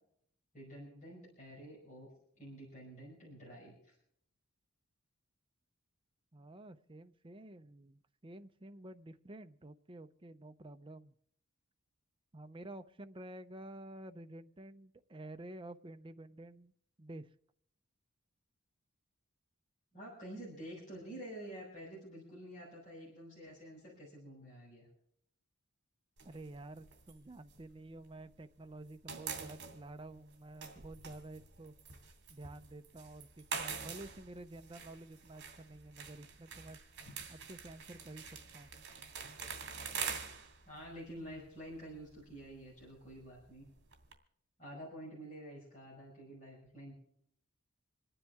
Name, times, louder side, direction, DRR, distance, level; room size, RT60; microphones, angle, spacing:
voice 1, 0.5-2.1 2.4-4.0 19.9-24.9 37.0-37.2 40.6-43.7 44.6-46.9, right 1 dB, 35° left, -5 dB, 5.4 m, -49 dB
voice 2, 6.3-11.1 12.3-16.7 17.0-17.3 26.2-31.7 32.3-36.8 37.3-38.3 38.5-38.7, right 1 dB, 25° right, 8 dB, 0.5 m, -50 dB
sound 1, 26.2-28.4 28.7-44.1, right 6 dB, 55° right, 2.5 m, -46 dB
27.5 x 10.0 x 3.5 m, 0.69 s
head